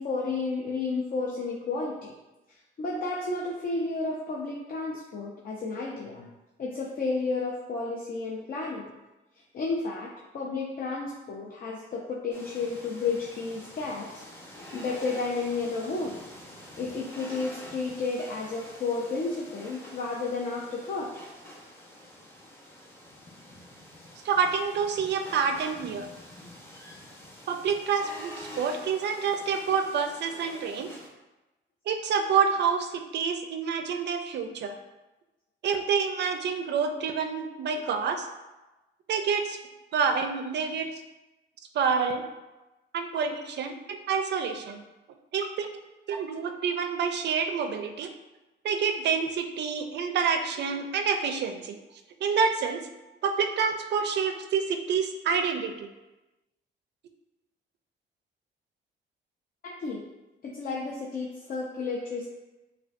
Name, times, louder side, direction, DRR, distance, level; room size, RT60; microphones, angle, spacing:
voice 1, 0.0-2.1 2.8-6.3 6.6-8.9 9.5-10.1 10.3-14.2 14.7-16.2 16.8-21.1 59.6-60.0 60.4-62.3, left 3 dB, 45° left, -2 dB, 0.6 m, -32 dB
sound 1, 12.3-31.1, left 1 dB, 10° left, 0.9 m, -47 dB
voice 2, 24.2-26.1 27.5-30.9 31.9-34.8 35.6-38.3 39.1-39.6 39.9-40.9 41.7-42.2 42.9-44.8 45.3-45.8 46.1-48.1 48.6-51.8 52.2-52.8 53.2-55.9, right 6 dB, 60° right, 6 dB, 0.4 m, -28 dB
5.0 x 2.2 x 2.5 m, 1.1 s
cardioid pair, 90°, 20 cm